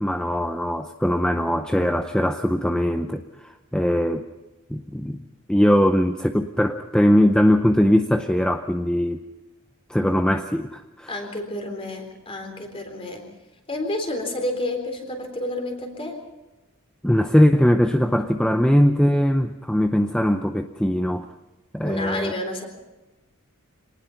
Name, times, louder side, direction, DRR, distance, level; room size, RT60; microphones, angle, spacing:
voice 1, 0.0-3.2 3.7-4.3 4.7-5.2 5.5-9.2 9.9-11.1 17.0-21.3 21.7-22.3, equal, 5° left, 7 dB, 0.6 m, -20 dB
voice 2, 11.1-13.3 13.7-16.2 21.8-22.7, left 1 dB, 25° left, 4 dB, 3.8 m, -30 dB
25.5 x 19.0 x 5.8 m, 1.1 s
head